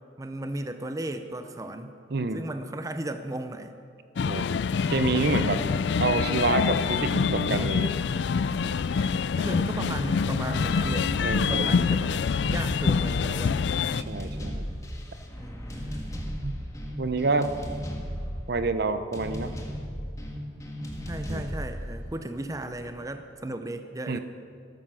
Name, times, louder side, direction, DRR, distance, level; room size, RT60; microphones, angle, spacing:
voice 1, 0.2-2.0 2.3-3.7 5.5-5.9 9.0-12.1 12.5-13.7 15.4-16.1 21.1-24.2, right 1 dB, 15° right, 8 dB, 0.6 m, -35 dB
voice 2, 2.1-2.4 4.2-4.5 4.9-5.6 6.0-7.9 11.2-11.7 14.0-14.7 16.4-16.6 17.0-17.5 18.5-19.5 21.3-21.4 24.1-24.2, right 3 dB, 55° right, 11 dB, 0.7 m, -27 dB
sound 1, 4.2-14.0, left 5 dB, 65° left, 0.4 m, -26 dB
sound 2, 10.3-23.1, equal, 15° left, 1.5 m, -36 dB
13.5 x 13.0 x 6.2 m, 2.3 s
head